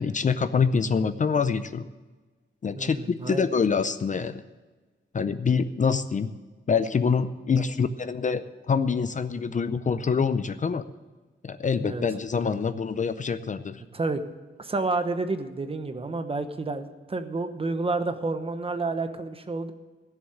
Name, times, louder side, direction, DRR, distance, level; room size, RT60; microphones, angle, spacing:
voice 1, 0.0-1.9 2.6-4.4 5.1-6.3 6.7-10.8 11.4-13.8, left 5 dB, 40° left, 11 dB, 0.5 m, -25 dB
voice 2, 2.8-3.5 11.8-12.0 13.9-14.2 14.6-19.7, right 3 dB, 30° right, 9 dB, 1.0 m, -30 dB
16.5 x 7.2 x 7.8 m, 1.3 s
wide cardioid pair, 165°, 20 cm